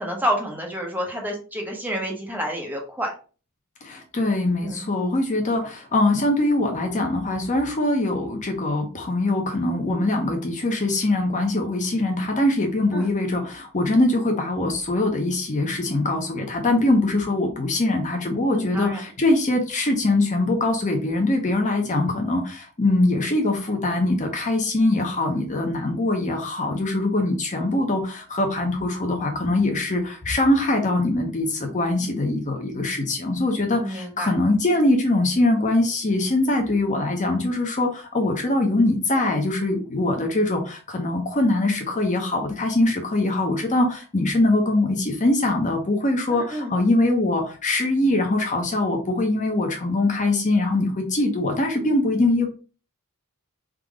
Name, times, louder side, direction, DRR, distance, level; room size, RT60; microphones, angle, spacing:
voice 1, 0.0-3.1 4.6-4.9 12.9-13.1 18.5-19.1 33.8-34.4 46.3-46.7, equal, 10° right, 0 dB, 1.1 m, -29 dB
voice 2, 3.8-52.5, left 2 dB, 35° left, 3 dB, 0.7 m, -22 dB
3.7 x 2.9 x 4.8 m, 0.37 s
head